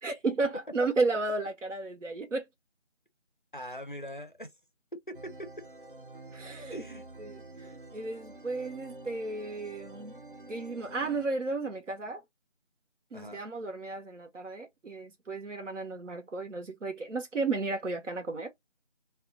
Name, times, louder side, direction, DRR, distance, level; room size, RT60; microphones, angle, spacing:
voice 1, 0.0-2.5 6.3-6.8 7.2-10.2 10.5-12.2 13.1-18.5, right 3 dB, 85° right, 0.8 m, -33 dB
voice 2, 3.5-4.5 5.1-5.5 6.7-7.0 13.1-13.4, equal, 45° left, 0.4 m, -41 dB
sound 1, 5.1-11.3, right 2 dB, 50° right, 0.4 m, -48 dB
2.2 x 2.1 x 3.8 m
figure-of-eight pair, 170°, 36 cm